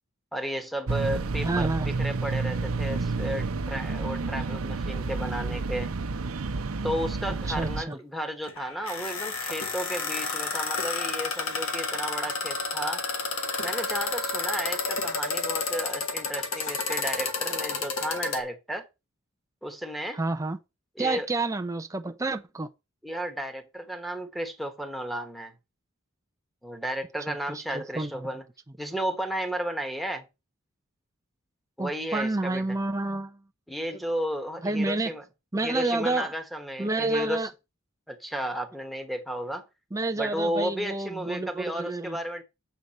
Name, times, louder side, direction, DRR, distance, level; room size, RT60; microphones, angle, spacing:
voice 1, 0.3-5.9 6.8-13.0 13.6-18.8 19.6-20.2 21.0-21.3 23.0-25.5 26.6-28.4 28.8-30.2 31.8-32.7 33.7-35.2 35.6-37.5 38.1-39.6 40.2-42.4, equal, ahead, 1.3 m, -33 dB
sound 1, 0.9-7.8, right 3 dB, 80° right, 0.7 m, -30 dB
voice 2, 1.4-1.9 7.5-8.0 20.1-20.6 21.0-22.7 27.3-28.3 31.8-33.4 34.6-35.1 35.5-36.3 36.8-37.5 39.9-42.2, right 2 dB, 15° right, 0.5 m, -29 dB
sound 2, 8.4-18.4, left 4 dB, 70° left, 1.7 m, -31 dB
7.9 x 6.8 x 4.2 m
head